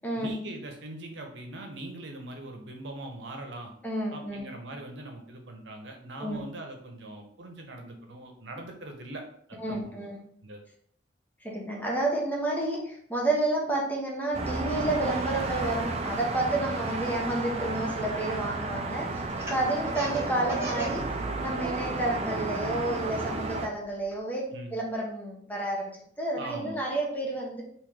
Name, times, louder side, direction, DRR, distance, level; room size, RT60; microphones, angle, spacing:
voice 1, 0.2-3.7 4.1-9.2 9.5-10.1 10.4-10.6 24.5-24.8 26.4-26.8, right 1 dB, 90° right, 3 dB, 0.8 m, -41 dB
voice 2, 3.8-4.5 6.2-6.4 9.5-10.2 11.4-19.2 19.5-25.9 26.2-27.6, right 2 dB, 10° left, -3 dB, 0.9 m, -30 dB
sound 1, 14.3-23.7, right 2 dB, 35° right, 0.4 m, -32 dB
Laughter, 19.3-21.0 21.3-22.0 22.4-24.1, right 3 dB, 15° right, 1.0 m, -37 dB
3.0 x 2.8 x 3.7 m, 0.63 s
head